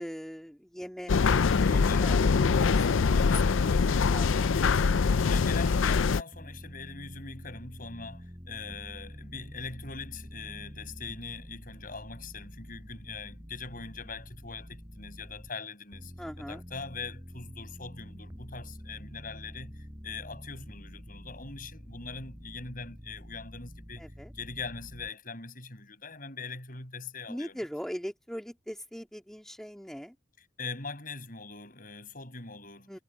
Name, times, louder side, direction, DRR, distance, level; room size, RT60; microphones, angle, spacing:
voice 1, 0.0-3.3 3.6-4.7 16.2-16.6 24.0-24.3 27.3-30.1 32.9-33.0, equal, ahead, 1.9 m, -41 dB
sound 1, 1.1-6.2, left 5 dB, 80° left, 0.5 m, -24 dB
voice 2, 1.6-2.8 3.2-4.2 5.3-24.0 24.3-27.6 30.4-33.0, left 4 dB, 45° left, 7.1 m, -42 dB
sound 2, 6.3-15.5 15.9-25.1, equal, 15° right, 5.7 m, -47 dB
head